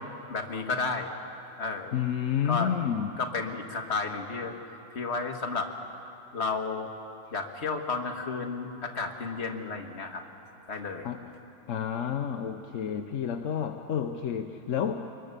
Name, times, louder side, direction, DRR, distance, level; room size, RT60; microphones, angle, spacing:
voice 1, 0.3-1.1 1.6-1.9 2.4-2.7 3.2-4.5 4.9-5.7 6.3-6.9 7.3-10.2 10.7-11.1, left 4 dB, 35° left, 3 dB, 1.7 m, -32 dB
voice 2, 1.9-3.2 11.0-11.3 11.7-15.1, left 8 dB, 55° left, 5 dB, 0.9 m, -30 dB
24.5 x 21.5 x 6.7 m, 2.8 s
omnidirectional pair, 2.0 m